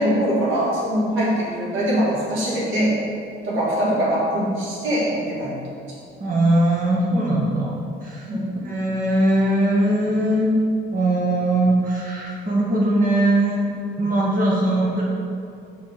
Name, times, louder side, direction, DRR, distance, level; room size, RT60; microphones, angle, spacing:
voice 1, 0.0-3.0 3.4-5.6 8.3-8.6, equal, 85° right, -5 dB, 1.9 m, -22 dB
voice 2, 6.2-7.7 8.0-8.3 8.6-10.5 10.9-13.7 14.0-15.0, right 1 dB, 45° right, -4 dB, 1.7 m, -20 dB
7.9 x 4.7 x 5.1 m, 2.4 s
cardioid pair, 90°, 20 cm